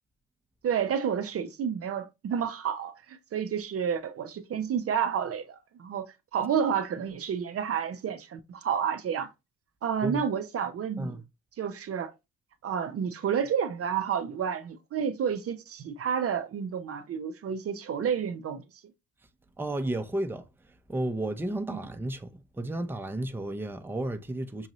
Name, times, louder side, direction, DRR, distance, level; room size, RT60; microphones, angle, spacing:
voice 1, 0.6-9.3 9.8-11.2 11.6-12.1 12.6-18.6 21.7-21.8, right 7 dB, 50° right, 0.6 m, -30 dB
voice 2, 19.6-24.7, right 1 dB, 5° right, 0.7 m, -33 dB
6.3 x 2.6 x 2.9 m
cardioid pair, 100°, 31 cm